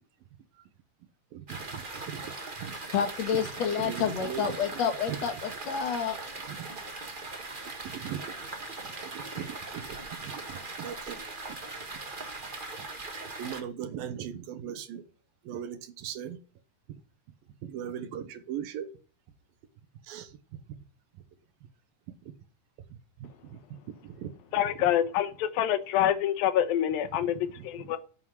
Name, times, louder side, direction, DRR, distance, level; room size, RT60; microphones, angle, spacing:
voice 1, 1.3-2.3 2.6-2.7 3.8-4.6 5.1-5.2 6.5-6.6 7.8-8.2 9.0-9.9 10.2-11.3 12.8-12.9 13.4-15.0 15.4-16.4 17.6-18.9 20.0-20.6 22.2-22.3 23.2-23.6 23.9-24.3 27.6-27.7, right 9 dB, 85° right, 3.0 m, -39 dB
sound 1, 1.5-13.6, right 3 dB, 45° right, 0.6 m, -40 dB
voice 2, 2.9-6.2, left 7 dB, 55° left, 2.5 m, -29 dB
voice 3, 24.5-28.0, left 11 dB, 90° left, 2.8 m, -26 dB
9.7 x 7.9 x 9.1 m
omnidirectional pair, 4.0 m